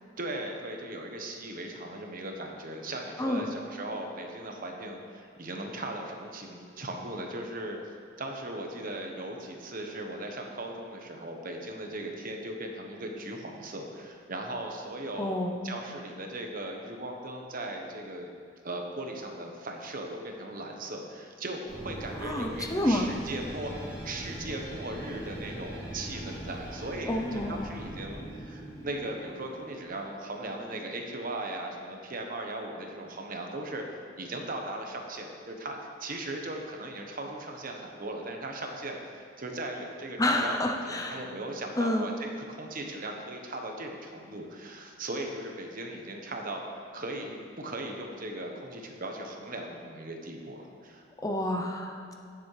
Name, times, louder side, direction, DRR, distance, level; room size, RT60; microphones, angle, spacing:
voice 1, 0.2-7.8 8.2-18.3 18.6-23.7 24.0-40.6 40.8-46.6 46.9-51.0, right 1 dB, 50° right, 2 dB, 1.1 m, -38 dB
voice 2, 3.2-3.6 15.2-15.6 22.2-23.1 27.1-27.7 40.2-41.2 41.8-42.1 51.2-52.1, left 1 dB, 20° left, 3 dB, 0.6 m, -29 dB
sound 1, 21.7-30.9, right 1 dB, 15° right, 2.6 m, -41 dB
16.5 x 7.3 x 3.3 m, 2.4 s
head